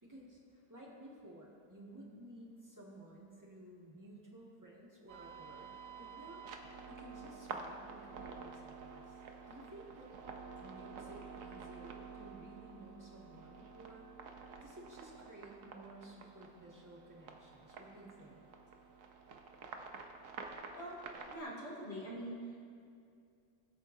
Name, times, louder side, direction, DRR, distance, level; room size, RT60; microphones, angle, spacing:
voice 1, 0.0-6.5 6.9-10.1 10.6-14.1 14.6-18.4, right 1 dB, 10° right, -4 dB, 1.7 m, -55 dB
sound 1, 5.1-21.4, right 5 dB, 55° right, 1.0 m, -50 dB
voice 2, 21.3-22.6, right 1 dB, 35° left, -5 dB, 2.8 m, -44 dB
21.5 x 8.2 x 2.7 m, 2.4 s
omnidirectional pair, 2.0 m